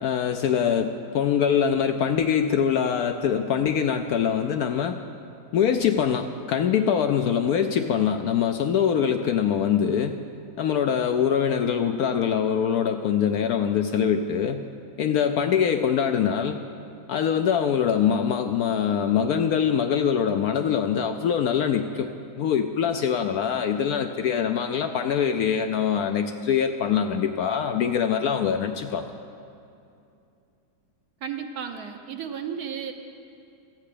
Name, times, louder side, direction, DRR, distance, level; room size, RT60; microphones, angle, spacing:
voice 1, 0.0-5.0 5.5-10.1 10.6-14.6 15.0-16.6 17.1-22.1 22.4-29.1, left 8 dB, 70° left, 6 dB, 0.9 m, -23 dB
voice 2, 31.2-32.9, right 7 dB, 65° right, 6 dB, 1.2 m, -33 dB
13.5 x 8.6 x 6.7 m, 2.6 s
omnidirectional pair, 1.9 m